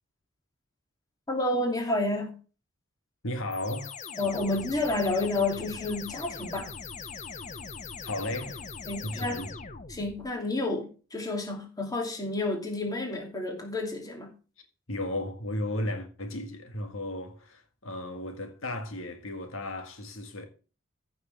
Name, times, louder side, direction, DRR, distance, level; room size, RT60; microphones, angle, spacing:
voice 1, 1.3-2.3 4.2-6.7 8.9-9.4 9.9-14.3, left 2 dB, 20° left, 2.6 m, -30 dB
voice 2, 3.2-3.9 8.0-8.6 9.0-9.5 14.9-20.4, left 1 dB, 75° left, 1.8 m, -34 dB
sound 1, 3.5-10.3, left 5 dB, 35° left, 0.9 m, -41 dB
15.0 x 6.5 x 3.4 m
head